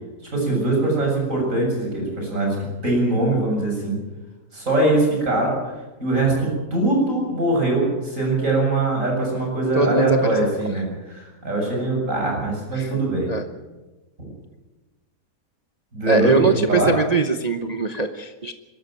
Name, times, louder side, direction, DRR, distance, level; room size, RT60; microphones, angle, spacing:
voice 1, 0.3-4.0 4.5-5.7 6.0-13.3 15.9-17.0, right 2 dB, 55° right, 0 dB, 7.6 m, -22 dB
voice 2, 9.7-10.4 12.8-12.9 13.3-13.5 16.1-18.5, right 4 dB, 30° right, 6 dB, 0.8 m, -21 dB
23.5 x 13.0 x 9.0 m, 1.1 s
omnidirectional pair, 1.7 m